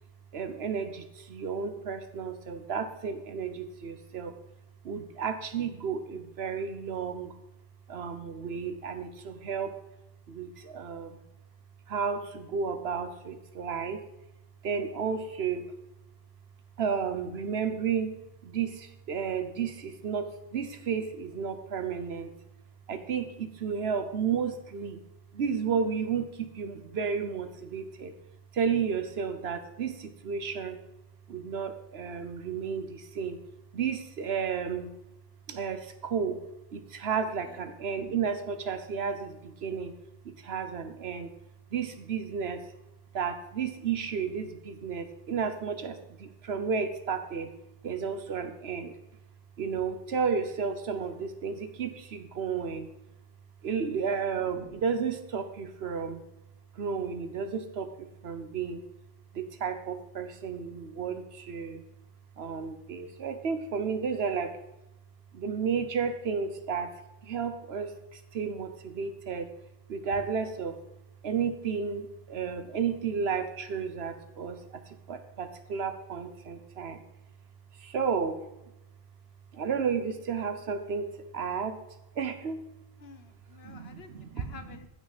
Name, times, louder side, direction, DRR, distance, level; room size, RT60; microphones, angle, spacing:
voice 1, 0.3-4.3 4.8-7.3 7.9-9.8 10.3-11.2 11.9-14.0 14.6-15.6 16.8-18.2 18.4-22.3 22.9-25.0 25.3-28.1 28.5-30.8 31.3-33.4 33.7-34.9 35.5-36.4 36.7-39.9 40.2-41.3 41.7-42.6 43.1-47.5 47.8-48.9 49.6-52.9 53.6-56.2 56.8-58.8 59.3-61.8 62.4-64.6 65.3-69.5 69.9-70.8 71.2-77.0 77.8-78.4 79.5-81.1 81.3-81.8 82.2-82.6 83.6-84.6, right 6 dB, 65° right, 9 dB, 1.1 m, -32 dB
voice 2, 83.0-84.1 84.3-84.9, left 5 dB, 65° left, 9 dB, 1.0 m, -50 dB
15.0 x 6.2 x 4.1 m, 0.90 s
omnidirectional pair, 1.2 m